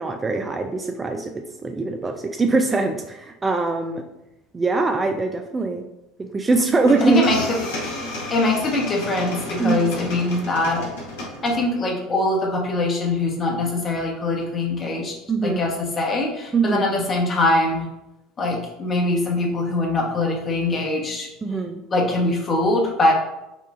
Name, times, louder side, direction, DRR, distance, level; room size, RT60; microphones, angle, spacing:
voice 1, 0.0-4.0 4.5-5.8 6.2-7.2 9.6-9.8 15.3-15.6 16.5-16.8 21.4-21.8, right 3 dB, 20° right, 4 dB, 0.3 m, -22 dB
sound 1, 6.5-6.6 6.9-11.8, left 1 dB, 65° left, 1.1 m, -32 dB
voice 2, 7.0-7.4 8.3-10.9 11.4-15.1 15.4-17.9 18.4-21.3 21.9-23.1, left 2 dB, 30° left, -1 dB, 1.0 m, -22 dB
5.2 x 2.4 x 2.4 m, 0.92 s
figure-of-eight pair, 70°, 0 cm